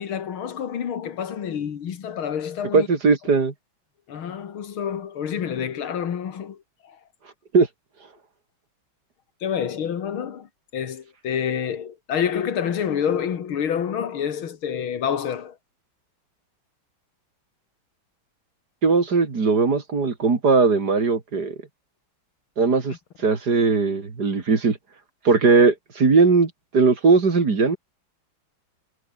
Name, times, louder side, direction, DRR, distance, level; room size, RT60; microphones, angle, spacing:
voice 1, 0.0-2.9 4.1-6.6 6.8-7.0 9.4-10.5 10.7-15.6, left 8 dB, 80° left, 2.5 m, -28 dB
voice 2, 2.7-3.5 7.5-7.7 18.8-21.5 22.6-22.9 23.2-24.8 25.2-27.8, right 4 dB, 50° right, 3.2 m, -19 dB
omnidirectional pair, 2.3 m